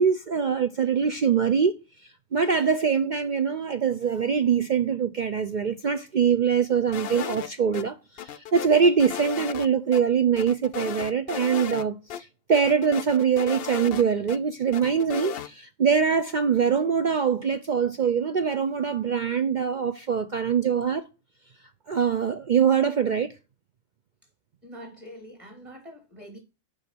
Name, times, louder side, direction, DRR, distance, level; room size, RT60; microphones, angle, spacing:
voice 1, 0.0-1.8 2.3-21.1 21.9-23.3, right 6 dB, 75° right, 0.4 m, -23 dB
sound 1, 6.9-7.8 8.2-9.7 9.9-10.0 10.4-11.8 12.1-12.2 12.5-14.4 14.7-15.5, left 9 dB, 60° left, 0.6 m, -35 dB
voice 2, 24.6-26.4, equal, 20° right, 3.1 m, -44 dB
7.0 x 5.4 x 6.1 m
omnidirectional pair, 1.5 m